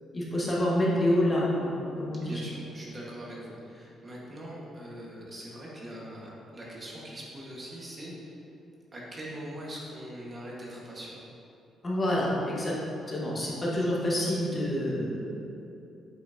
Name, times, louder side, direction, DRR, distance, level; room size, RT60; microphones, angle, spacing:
voice 1, 0.1-1.7 2.0-2.4 11.8-12.7 13.1-15.4, left 1 dB, 25° left, -5 dB, 1.4 m, -27 dB
voice 2, 2.2-8.4 8.9-11.2, equal, 30° right, -5 dB, 1.5 m, -42 dB
8.0 x 5.8 x 2.8 m, 2.7 s
cardioid pair, 115°, 0 cm